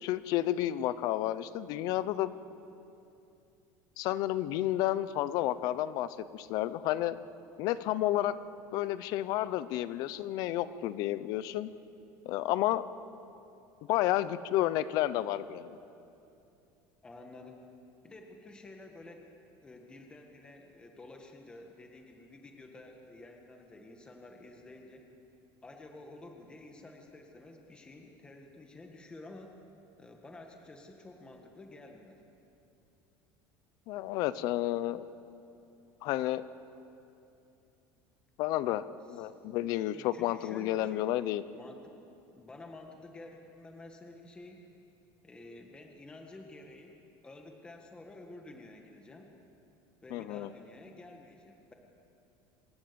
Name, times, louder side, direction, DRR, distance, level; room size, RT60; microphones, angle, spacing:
voice 1, 0.0-2.3 4.0-7.2 7.6-8.4 8.7-11.7 12.3-12.8 13.9-15.8 33.9-35.0 36.0-36.4 38.4-38.8 39.1-41.4 50.1-50.5, left 14 dB, 50° left, 15 dB, 0.8 m, -31 dB
voice 2, 17.0-17.6 18.0-25.1 25.6-29.5 30.0-32.2 39.1-39.3 39.9-41.2 41.5-41.9 42.3-44.7 45.2-49.3 50.0-51.7, left 2 dB, 10° left, 2 dB, 1.7 m, -51 dB
26.0 x 19.5 x 7.0 m, 2.7 s
cardioid pair, 165°, 8 cm